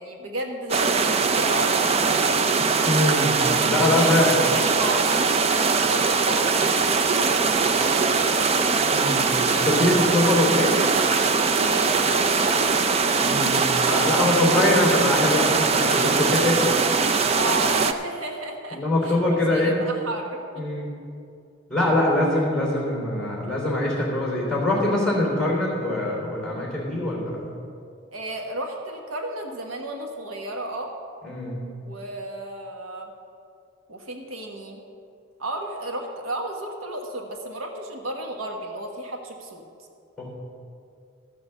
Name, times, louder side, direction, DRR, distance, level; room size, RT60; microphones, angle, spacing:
voice 1, 0.0-2.4 3.7-8.4 11.4-12.4 14.1-14.8 17.3-19.2 19.5-20.6 28.1-30.9 31.8-33.1 33.9-34.8 35.4-39.6, right 1 dB, 85° right, 2 dB, 1.3 m, -33 dB
sound 1, 0.7-17.9, right 4 dB, 30° right, 0.5 m, -21 dB
voice 2, 2.8-4.4 8.9-10.8 13.2-16.7 18.7-19.8 20.6-20.9 21.7-27.5 31.2-31.6 40.2-40.3, left 1 dB, 5° left, -4 dB, 3.4 m, -23 dB
14.0 x 6.4 x 6.9 m, 2.4 s
head